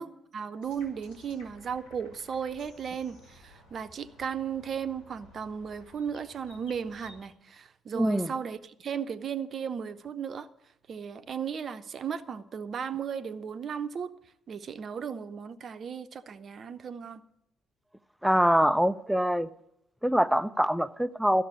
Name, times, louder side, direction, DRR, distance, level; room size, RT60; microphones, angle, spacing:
voice 1, 0.0-10.5 10.9-14.1 14.5-17.2, right 7 dB, 50° right, 0.8 m, -35 dB
sound 1, 0.6-7.3, left 1 dB, 75° left, 2.4 m, -55 dB
voice 2, 7.9-8.3 18.2-19.5 20.0-21.4, equal, 5° right, 0.6 m, -24 dB
13.0 x 6.7 x 9.9 m
figure-of-eight pair, 45°, 0 cm